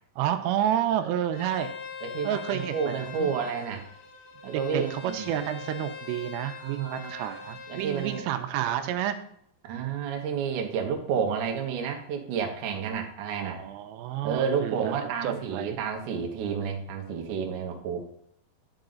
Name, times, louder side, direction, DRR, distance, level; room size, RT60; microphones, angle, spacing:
voice 1, 0.2-1.7 2.2-3.3 4.5-9.2 13.4-15.8, right 11 dB, 85° right, 9 dB, 2.7 m, -30 dB
Bowed string instrument, 1.3-8.3, left 5 dB, 90° left, 3.3 m, -42 dB
voice 2, 2.0-3.9 4.4-5.3 6.6-7.1 7.7-8.2 9.6-13.6 14.2-18.0, right 6 dB, 70° right, 2 dB, 2.0 m, -30 dB
10.5 x 4.8 x 3.9 m, 0.70 s
omnidirectional pair, 4.9 m